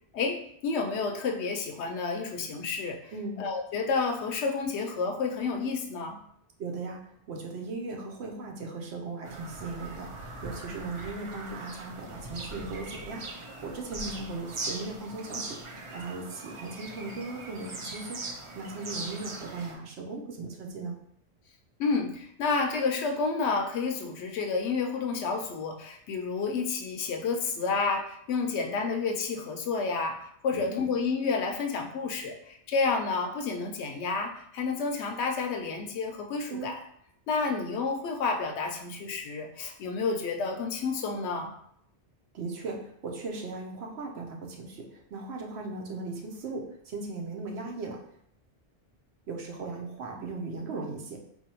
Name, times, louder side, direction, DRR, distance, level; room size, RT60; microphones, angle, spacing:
voice 1, 0.1-3.1 3.4-6.2 21.8-30.2 30.4-36.8 37.3-41.5, left 4 dB, 80° left, 4 dB, 0.9 m, -30 dB
voice 2, 3.1-3.4 6.6-7.0 7.3-15.6 15.9-18.2 18.5-21.0 30.5-30.9 36.5-36.7 42.3-48.0 49.3-51.2, right 3 dB, 75° right, 1 dB, 0.9 m, -38 dB
Bird vocalization bird call bird song, 9.2-19.7, right 2 dB, 45° right, 0.4 m, -40 dB
4.2 x 2.7 x 2.9 m, 0.69 s
omnidirectional pair, 1.1 m